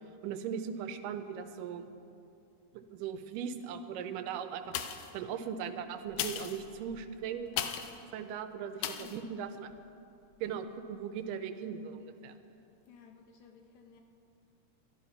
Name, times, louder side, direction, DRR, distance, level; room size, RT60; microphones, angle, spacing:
voice 1, 0.2-1.9 2.7-7.6 8.1-9.7 10.4-12.4, right 7 dB, 85° right, 9 dB, 2.3 m, -39 dB
sound 1, 4.7-5.2 6.1-8.0 8.8-9.2 9.7-9.8, left 10 dB, 90° left, 2.3 m, -37 dB
voice 2, 8.9-9.3 12.9-14.0, left 5 dB, 70° left, 4 dB, 1.9 m, -55 dB
13.0 x 11.5 x 5.7 m, 2.7 s
omnidirectional pair, 3.7 m